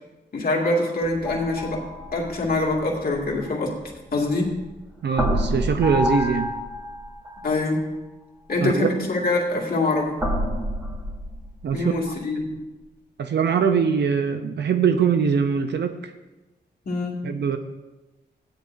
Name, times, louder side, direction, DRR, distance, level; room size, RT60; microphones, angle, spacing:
voice 1, 0.3-1.8 2.1-3.7 4.1-4.5 7.4-7.8 8.5-10.2 11.7-12.6 16.8-17.2, left 2 dB, 55° left, -3 dB, 2.3 m, -24 dB
sound 1, 1.0-4.6 5.1-7.6 8.5-8.7 10.2-12.0, left 1 dB, 15° right, 2.9 m, -29 dB
voice 2, 5.0-6.5 8.6-9.0 11.6-11.9 13.2-16.1 17.2-17.6, right 6 dB, 70° right, 7 dB, 0.6 m, -22 dB
16.5 x 10.5 x 2.6 m, 1.1 s
wide cardioid pair, 120°, 18 cm